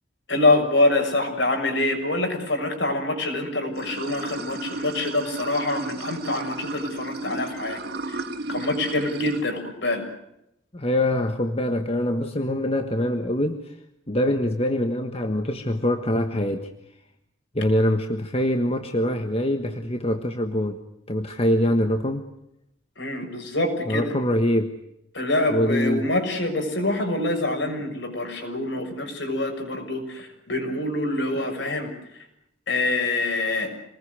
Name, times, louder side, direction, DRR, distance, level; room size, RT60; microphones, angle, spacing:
voice 1, 0.3-7.8 8.1-8.2 8.5-10.0 23.0-24.1 25.1-31.9 32.7-33.7, left 2 dB, 60° left, 4 dB, 6.8 m, -25 dB
Water / Sink (filling or washing), 3.7-9.4, right 2 dB, 50° right, 2.8 m, -33 dB
voice 2, 10.7-13.7 14.1-16.7 17.5-20.8 21.1-22.2 23.9-24.8 25.5-26.1, left 1 dB, 30° left, 6 dB, 1.4 m, -24 dB
27.5 x 20.5 x 8.1 m, 0.81 s
head